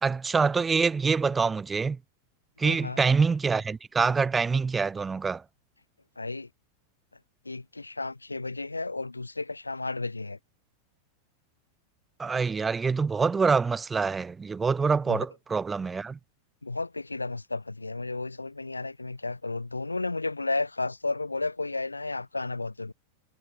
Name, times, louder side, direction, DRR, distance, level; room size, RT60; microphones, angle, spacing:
voice 1, 0.0-2.0 2.6-5.4 12.2-16.2, right 5 dB, 15° right, 0.8 m, -25 dB
voice 2, 2.6-3.0 6.2-6.5 7.4-10.4 15.1-15.2 16.6-22.9, left 3 dB, 80° left, 4.6 m, -33 dB
figure-of-eight pair, 90°, 0 cm